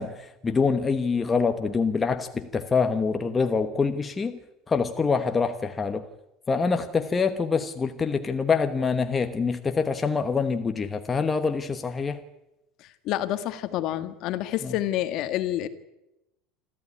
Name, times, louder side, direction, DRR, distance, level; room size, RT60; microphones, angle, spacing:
voice 1, 0.0-4.4 4.7-6.0 6.5-12.2 14.6-14.8, left 5 dB, 15° left, 7 dB, 1.1 m, -25 dB
voice 2, 13.1-15.7, left 13 dB, 45° left, 11 dB, 1.7 m, -28 dB
27.5 x 13.5 x 9.8 m, 0.91 s
cardioid pair, 165°, 0 cm